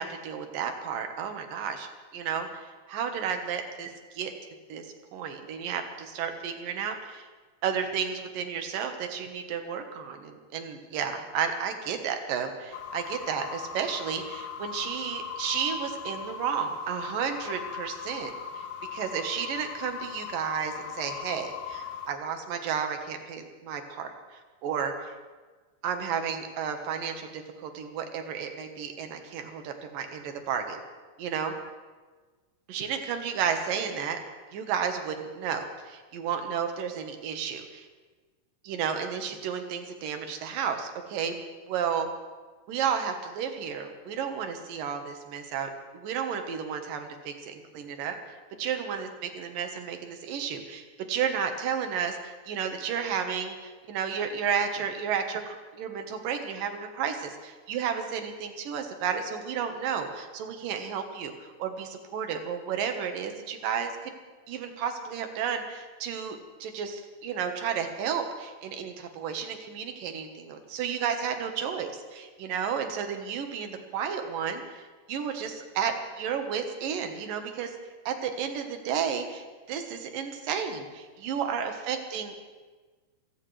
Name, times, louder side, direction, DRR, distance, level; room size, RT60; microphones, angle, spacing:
voice 1, 0.0-1.9 2.1-4.3 4.7-4.9 5.1-7.3 7.6-18.3 18.6-18.7 18.9-25.1 25.8-30.8 31.2-31.5 32.7-34.2 34.5-37.9 38.6-41.4 41.7-42.1 42.7-48.2 48.6-49.1 49.4-64.1 64.5-74.8 75.1-77.7 78.1-82.4, right 7 dB, 75° right, 6 dB, 3.0 m, -32 dB
sound 1, 12.7-22.1, left 7 dB, 85° left, 2.6 m, -39 dB
25.5 x 16.0 x 3.3 m, 1.4 s
omnidirectional pair, 4.0 m